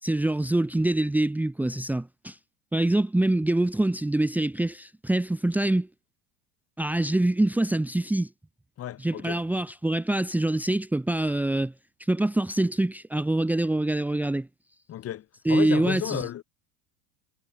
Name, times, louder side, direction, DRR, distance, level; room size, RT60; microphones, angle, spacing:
voice 1, 0.0-2.4 2.7-5.9 6.8-8.3 9.0-11.7 12.0-14.5 15.4-16.3, right 1 dB, 5° right, 1.5 m, -25 dB
voice 2, 8.8-9.4 14.9-16.4, left 12 dB, 30° left, 3.1 m, -33 dB
supercardioid pair, 160°, 48 cm